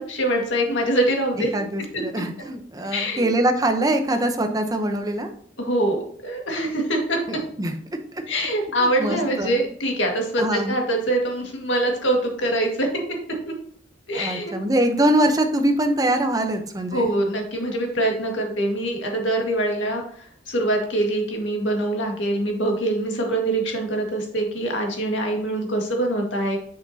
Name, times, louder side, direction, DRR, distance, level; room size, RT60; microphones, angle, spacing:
voice 1, 0.0-1.5 2.9-3.3 5.6-7.2 8.3-12.9 13.5-13.6 14.1-14.5 16.9-26.6, right 1 dB, 90° left, 1 dB, 1.9 m, -24 dB
voice 2, 1.5-5.3 7.3-7.7 8.8-9.6 10.4-10.8 14.1-17.1, right 1 dB, 20° right, 5 dB, 0.8 m, -23 dB
7.3 x 6.0 x 2.8 m, 0.62 s
head